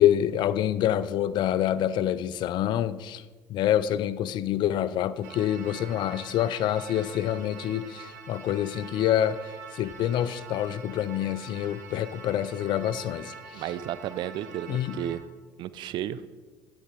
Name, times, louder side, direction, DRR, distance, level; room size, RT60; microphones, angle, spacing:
voice 1, 0.0-3.2 3.5-13.6 14.7-15.0, left 11 dB, 60° left, 16 dB, 0.4 m, -26 dB
sound 1, 5.2-15.2, right 5 dB, 90° right, 0.8 m, -45 dB
voice 2, 13.5-15.2 15.6-16.2, right 11 dB, 60° right, 15 dB, 0.3 m, -33 dB
8.8 x 4.0 x 4.7 m, 1.4 s
hypercardioid pair, 65°, 9 cm